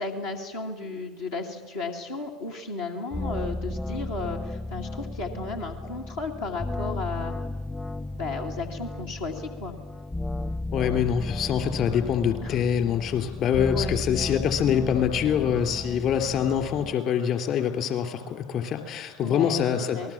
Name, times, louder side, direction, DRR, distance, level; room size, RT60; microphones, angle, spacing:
voice 1, 0.0-7.3 8.1-9.8 12.4-12.6 13.7-14.0 19.2-20.1, left 3 dB, 85° left, -2 dB, 2.5 m, -34 dB
sound 1, 3.1-16.9, left 2 dB, 15° left, 0.7 m, -34 dB
voice 2, 10.7-20.1, left 8 dB, 55° left, 7 dB, 3.5 m, -25 dB
27.0 x 20.0 x 7.4 m, 1.3 s
hypercardioid pair, 75°, 0 cm